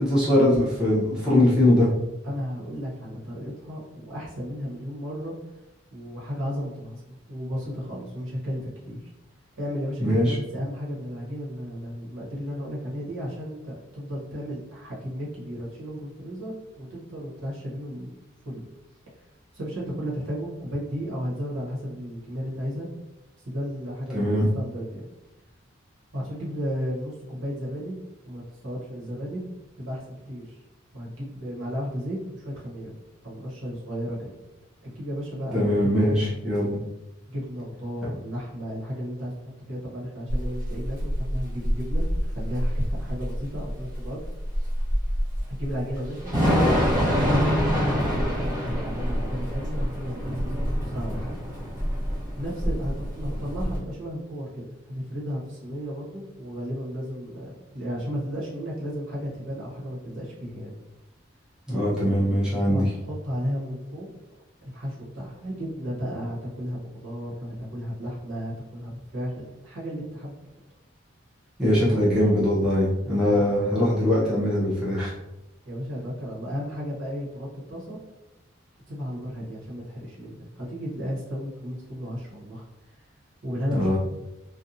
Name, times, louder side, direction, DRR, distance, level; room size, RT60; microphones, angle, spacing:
voice 1, 0.0-1.9 10.0-10.3 24.1-24.5 35.5-36.8 61.7-62.9 71.6-75.1 83.7-84.0, left 1 dB, 5° right, -10 dB, 0.7 m, -21 dB
voice 2, 2.2-5.4 5.9-9.1 9.6-18.1 18.4-18.6 19.5-22.9 23.4-25.1 26.1-28.0 28.2-29.4 29.8-30.5 30.9-32.9 33.2-34.3 34.9-36.2 37.3-42.1 42.3-44.2 44.6-44.7 45.5-46.3 47.0-51.3 52.4-60.7 62.6-64.1 64.6-70.4 71.7-72.0 75.6-78.0 78.9-82.6 83.4-84.0, equal, 80° right, -5 dB, 1.1 m, -34 dB
Thunder / Rain, 40.3-53.8, equal, 40° right, 1.0 m, -26 dB
2.6 x 2.3 x 2.7 m, 0.94 s
head